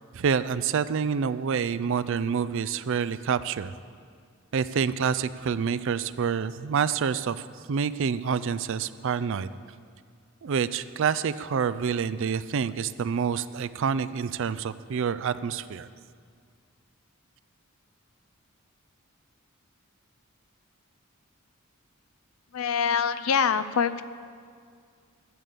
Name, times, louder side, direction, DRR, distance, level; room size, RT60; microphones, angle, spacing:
voice 1, 0.1-3.7 4.5-7.4 7.7-9.5 10.4-15.9, right 6 dB, 65° right, 15 dB, 0.4 m, -27 dB
voice 2, 22.5-24.0, left 7 dB, 80° left, 13 dB, 0.5 m, -24 dB
12.5 x 8.0 x 6.8 m, 2.1 s
head